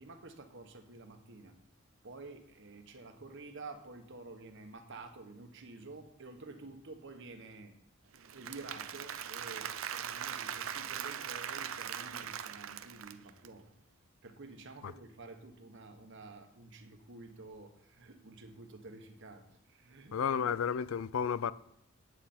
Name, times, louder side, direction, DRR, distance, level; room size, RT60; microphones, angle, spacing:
voice 1, 0.0-1.5 2.0-7.8 8.3-13.7 14.2-20.6, right 3 dB, 65° right, 1.3 m, -50 dB
Applause / Crowd, 8.1-13.5, right 9 dB, 85° right, 0.6 m, -40 dB
voice 2, 20.1-21.5, left 7 dB, 85° left, 0.4 m, -32 dB
11.5 x 9.1 x 4.4 m
head